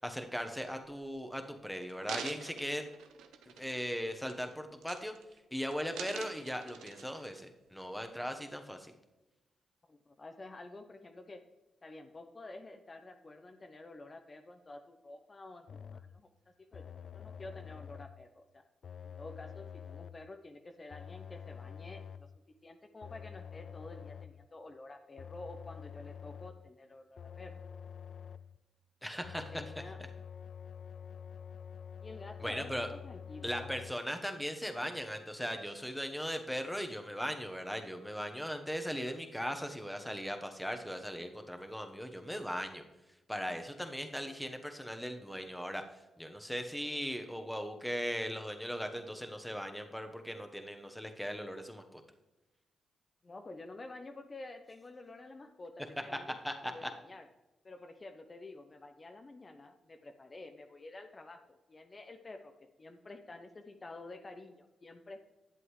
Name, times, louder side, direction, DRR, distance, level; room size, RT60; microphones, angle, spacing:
voice 1, 0.0-2.8 3.5-5.1 5.5-8.9 29.0-29.4 32.4-32.9 33.4-42.8 43.3-45.8 46.2-52.0 56.4-56.9, equal, 5° left, 6 dB, 1.2 m, -38 dB
sound 1, 1.0-1.2 1.8-3.9 4.3-4.5 4.8-5.4 5.7-7.4 8.0-8.1, right 7 dB, 85° right, 0.6 m, -46 dB
voice 2, 9.9-11.4 11.8-15.7 15.9-16.3 16.7-18.6 19.2-22.3 22.6-27.5 29.3-30.0 32.0-33.7 53.2-56.4 56.6-57.3 57.6-62.5 62.8-65.3, left 2 dB, 40° left, 6 dB, 0.7 m, -50 dB
sound 2, 15.7-16.2 16.7-18.2 18.8-20.3 20.9-22.4 23.0-24.5 25.2-26.7 27.2-28.6 29.2-33.9, left 7 dB, 65° left, 0.3 m, -47 dB
11.0 x 7.7 x 3.2 m, 1.0 s
supercardioid pair, 50°, 0 cm